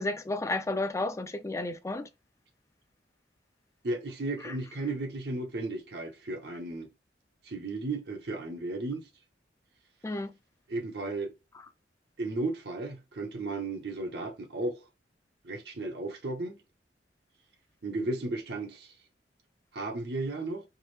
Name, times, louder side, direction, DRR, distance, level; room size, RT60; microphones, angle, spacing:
voice 1, 0.0-2.1 4.4-4.5 10.0-10.3, left 2 dB, 15° left, 0.4 m, -32 dB
voice 2, 3.8-6.9 7.4-9.1 10.7-11.3 12.2-14.8 15.4-16.6 17.8-18.9 19.7-20.6, right 2 dB, 65° right, 0.8 m, -34 dB
4.7 x 2.1 x 3.0 m
head